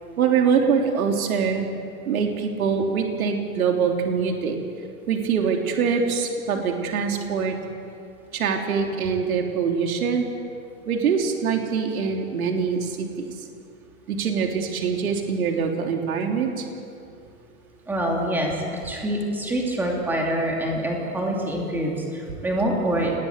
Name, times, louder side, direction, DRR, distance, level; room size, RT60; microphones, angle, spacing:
voice 1, 0.2-1.7 2.1-4.6 5.1-7.6 8.3-10.3 10.9-13.3 14.1-16.7, right 6 dB, 75° right, 2 dB, 3.5 m, -24 dB
voice 2, 17.9-23.1, right 1 dB, 5° right, -1 dB, 2.7 m, -25 dB
26.5 x 19.5 x 8.3 m, 2.5 s
supercardioid pair, 180°, 43 cm